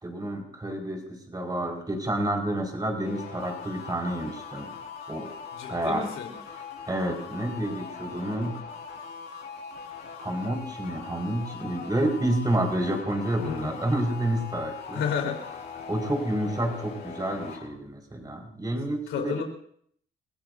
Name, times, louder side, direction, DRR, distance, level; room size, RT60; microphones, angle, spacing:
voice 1, 0.0-4.7 5.1-5.3 5.7-6.1 6.9-8.6 10.2-15.0 15.9-19.3, right 1 dB, 20° right, 2 dB, 4.7 m, -29 dB
sound 1, 3.0-17.7, left 6 dB, 60° left, 5.3 m, -41 dB
voice 2, 5.5-6.3 13.4-13.8 14.9-15.6 19.1-19.4, left 7 dB, 85° left, 1 dB, 3.8 m, -31 dB
29.0 x 16.0 x 2.6 m, 0.65 s
cardioid pair, 90°, 20 cm